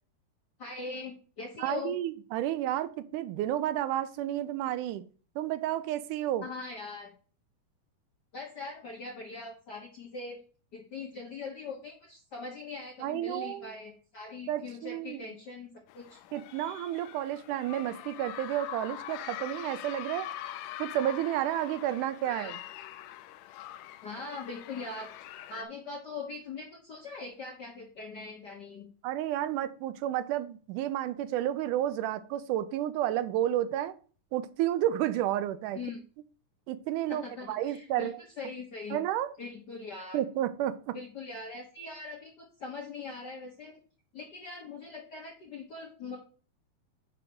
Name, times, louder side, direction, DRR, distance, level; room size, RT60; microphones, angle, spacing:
voice 1, 0.6-2.0 6.4-7.1 8.3-10.4 10.7-16.2 22.3-22.5 24.0-25.1 25.5-28.9 35.7-36.0 37.1-38.1 38.4-39.0 39.4-40.2 40.9-43.8 44.1-46.2, left 4 dB, 65° left, 0 dB, 1.0 m, -41 dB
voice 2, 1.6-5.0 5.4-6.4 13.0-13.7 14.5-15.2 16.3-20.3 20.8-22.6 29.0-33.9 34.3-35.8 36.7-37.2 37.5-38.2 38.9-39.3 40.1-41.0, right 12 dB, 85° right, 13 dB, 2.2 m, -31 dB
sound 1, 15.9-25.6, left 12 dB, 85° left, 1.5 m, -43 dB
5.8 x 5.0 x 6.1 m, 0.40 s
omnidirectional pair, 3.6 m